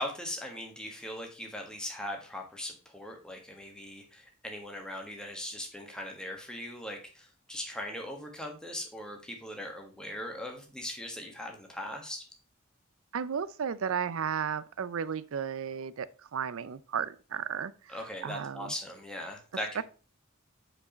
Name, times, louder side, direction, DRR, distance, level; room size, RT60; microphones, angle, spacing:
voice 1, 0.0-12.2 17.9-19.8, left 1 dB, 5° left, 1.3 m, -39 dB
voice 2, 13.1-18.7 19.7-19.8, right 7 dB, 80° right, 0.5 m, -34 dB
5.5 x 4.8 x 5.0 m
head